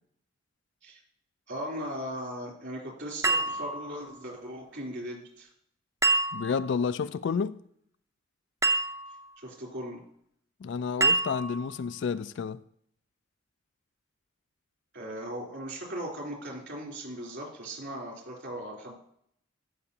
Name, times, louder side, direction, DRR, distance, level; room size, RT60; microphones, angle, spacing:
voice 1, 1.5-5.5 9.4-10.0 14.9-18.9, equal, 60° right, 3.3 m, -38 dB
sound 1, 3.2-4.2 6.0-6.8 8.6-9.3 11.0-11.8, right 3 dB, 15° right, 0.6 m, -27 dB
voice 2, 6.3-7.6 10.6-12.6, left 6 dB, 60° left, 0.3 m, -30 dB
15.0 x 5.9 x 2.8 m
head